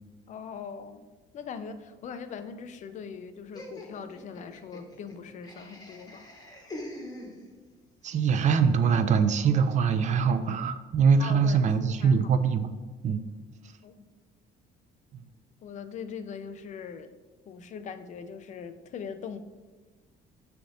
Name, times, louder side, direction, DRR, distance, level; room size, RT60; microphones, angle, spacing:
voice 1, 0.3-1.1 1.3-6.3 11.2-11.6 12.0-12.3 13.8-14.0 15.6-17.1 17.5-19.4, left 6 dB, 45° left, 10 dB, 0.4 m, -41 dB
Laughter, 3.5-7.8, left 1 dB, 20° left, 0.8 m, -44 dB
voice 2, 8.0-12.7 13.0-13.2, right 6 dB, 45° right, 9 dB, 0.4 m, -23 dB
5.9 x 3.3 x 2.6 m, 1.3 s
cardioid pair, 110°, 17 cm